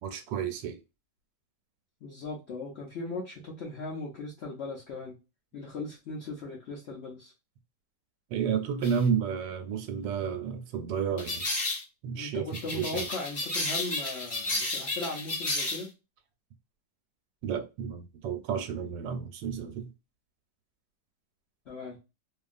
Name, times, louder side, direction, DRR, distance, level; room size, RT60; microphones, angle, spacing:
voice 1, 0.0-0.8 8.3-11.5 12.0-12.5 12.7-13.1 17.4-19.9, right 7 dB, 90° right, 1.3 m, -31 dB
voice 2, 2.0-5.2 5.5-7.3 12.1-15.9 21.7-22.0, left 3 dB, 85° left, 0.5 m, -38 dB
sound 1, 8.8-9.0 11.2-11.8 12.5-15.9, left 2 dB, 35° left, 0.9 m, -32 dB
2.8 x 2.4 x 2.4 m
omnidirectional pair, 1.9 m